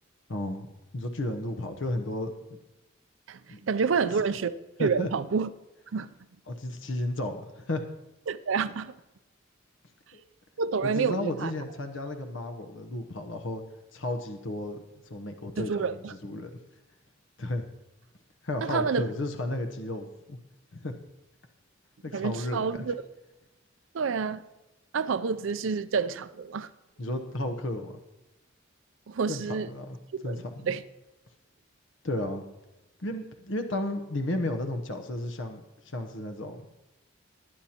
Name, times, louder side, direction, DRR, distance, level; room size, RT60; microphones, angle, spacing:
voice 1, 0.3-0.7 0.9-2.3 3.5-3.6 4.8-5.1 6.5-7.8 10.1-10.2 10.8-13.6 13.9-14.8 15.1-16.5 17.4-17.6 18.4-20.4 20.7-21.0 22.0-22.8 27.0-27.9 29.3-30.0 30.2-30.7 32.0-32.4 33.0-35.6 35.8-36.7, left 1 dB, 75° left, 0.9 m, -33 dB
voice 2, 3.3-4.5 4.8-5.5 5.9-6.1 8.3-8.9 10.6-11.5 15.6-16.1 18.6-19.1 22.1-22.9 23.9-24.4 24.9-26.7 29.1-29.7 30.2-30.8, right 5 dB, 75° right, 0.5 m, -28 dB
20.0 x 9.3 x 2.9 m
head